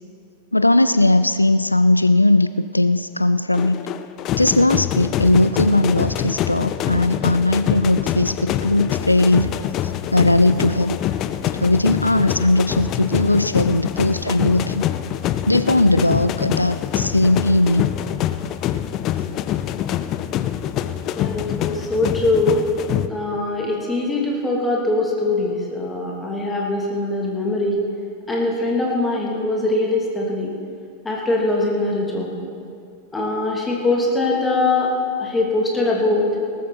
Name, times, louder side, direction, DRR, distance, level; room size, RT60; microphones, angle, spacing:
voice 1, 0.5-2.5 2.7-3.8 4.4-9.5 10.1-11.0 11.6-14.9 15.5-17.9, left 2 dB, 85° left, 12 dB, 0.3 m, -18 dB
sound 1, 3.5-23.1, left 11 dB, 35° left, 0.6 m, -25 dB
voice 2, 21.2-22.6 23.1-27.7 28.3-30.5 31.0-32.3 33.1-34.9 35.2-36.3, left 2 dB, 10° left, -2 dB, 3.0 m, -22 dB
18.5 x 13.5 x 4.3 m, 2.4 s
figure-of-eight pair, 90°, 0 cm